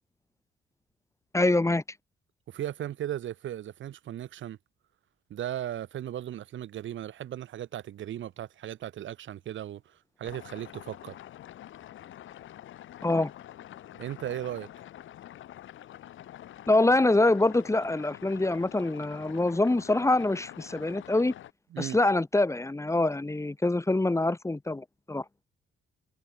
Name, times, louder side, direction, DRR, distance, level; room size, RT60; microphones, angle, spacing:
voice 1, 1.3-1.8 13.0-13.3 16.7-21.3 21.8-25.2, left 2 dB, 15° left, 2.8 m, -25 dB
voice 2, 2.5-4.6 5.3-11.1 13.9-14.7 21.7-22.0, right 11 dB, 75° right, 4.8 m, -37 dB
sound 1, 10.2-21.5, left 12 dB, 75° left, 7.9 m, -47 dB
cardioid pair, 90°, 20 cm